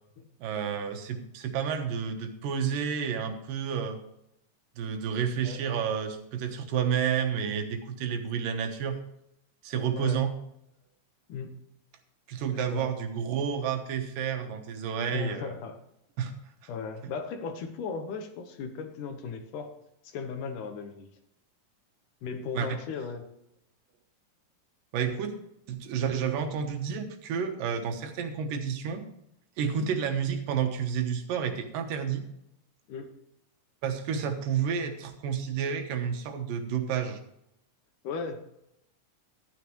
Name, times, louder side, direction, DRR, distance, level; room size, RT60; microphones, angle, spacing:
voice 1, 0.4-4.0 4.8-9.0 9.6-10.3 12.3-15.6 16.2-16.3 22.6-22.8 24.9-25.3 25.7-29.0 29.6-32.2 33.8-37.2, right 7 dB, 80° right, 6 dB, 2.8 m, -30 dB
voice 2, 12.5-12.9 15.1-15.8 16.7-19.7 20.0-21.1 22.2-23.2 29.6-29.9 32.9-33.1 38.0-38.4, left 5 dB, 70° left, 6 dB, 2.6 m, -37 dB
12.5 x 9.6 x 3.1 m, 0.79 s
omnidirectional pair, 3.9 m